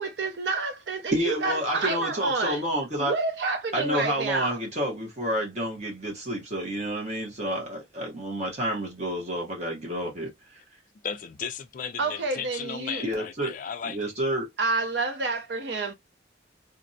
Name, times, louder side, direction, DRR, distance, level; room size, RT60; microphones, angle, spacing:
voice 1, 0.0-2.6 3.0-4.6 12.0-13.0 14.6-15.9, right 3 dB, 65° right, 0.6 m, -29 dB
voice 2, 1.1-3.1 3.7-10.3 13.0-13.5 13.8-14.5, equal, 35° right, 0.8 m, -29 dB
voice 3, 11.0-14.0, left 7 dB, 45° left, 0.3 m, -35 dB
2.4 x 2.0 x 2.6 m
head